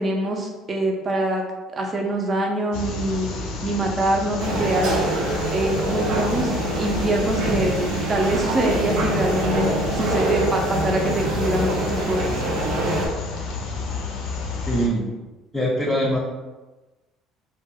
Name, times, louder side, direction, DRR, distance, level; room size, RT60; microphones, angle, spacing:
voice 1, 0.0-1.4 1.7-3.3 3.6-5.1 5.5-7.8 8.1-9.6 9.9-12.3, right 1 dB, 35° right, 1 dB, 0.6 m, -24 dB
sound 1, 2.7-14.9, left 3 dB, 75° left, 0.5 m, -31 dB
sound 2, 4.4-13.1, right 2 dB, 75° right, 0.6 m, -25 dB
voice 2, 14.7-15.1 15.5-16.2, equal, 10° left, -5 dB, 0.7 m, -22 dB
2.5 x 2.2 x 3.4 m, 1.2 s
supercardioid pair, 90°, 0 cm